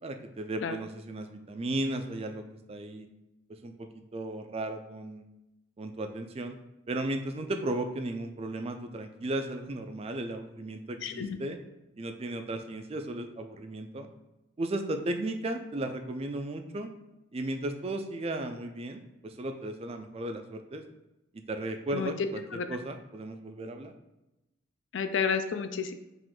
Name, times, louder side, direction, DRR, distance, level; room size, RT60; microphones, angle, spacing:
voice 1, 0.0-3.1 3.5-5.2 5.8-6.6 6.9-11.6 12.0-14.1 14.6-16.9 17.3-20.8 21.3-22.4 22.7-23.9, right 1 dB, 30° right, 6 dB, 0.3 m, -35 dB
voice 2, 11.0-11.4 21.9-22.7 24.9-25.9, left 6 dB, 60° left, 9 dB, 0.4 m, -31 dB
4.8 x 2.5 x 3.8 m, 0.96 s
head